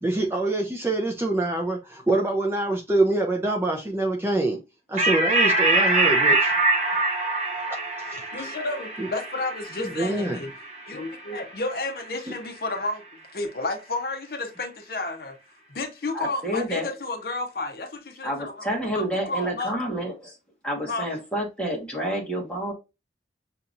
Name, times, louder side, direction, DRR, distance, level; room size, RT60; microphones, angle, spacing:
voice 1, 0.0-4.6 4.9-6.5 8.1-8.5 9.0-9.1 9.8-10.4, right 2 dB, 15° right, 0.5 m, -25 dB
sound 1, 5.0-11.9, right 2 dB, 40° right, 0.9 m, -24 dB
voice 2, 8.3-10.5 10.9-13.0 13.3-15.4 15.7-19.7 20.9-21.1, left 2 dB, 55° left, 0.7 m, -31 dB
voice 3, 16.1-16.9 18.2-20.4 20.6-22.7, right 1 dB, 5° left, 1.3 m, -29 dB
6.6 x 2.9 x 2.5 m
head